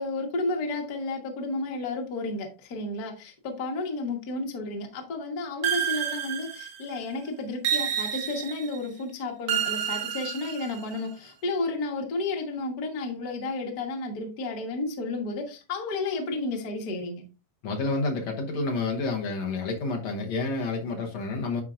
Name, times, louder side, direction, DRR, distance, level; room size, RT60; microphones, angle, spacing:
voice 1, 0.0-17.2, left 2 dB, 45° left, 1.3 m, -32 dB
sound 1, 5.6-7.0 7.6-8.8 9.5-11.0, right 9 dB, 85° right, 1.1 m, -29 dB
voice 2, 17.6-21.6, left 3 dB, 65° left, 1.9 m, -29 dB
12.0 x 4.5 x 2.5 m
omnidirectional pair, 3.7 m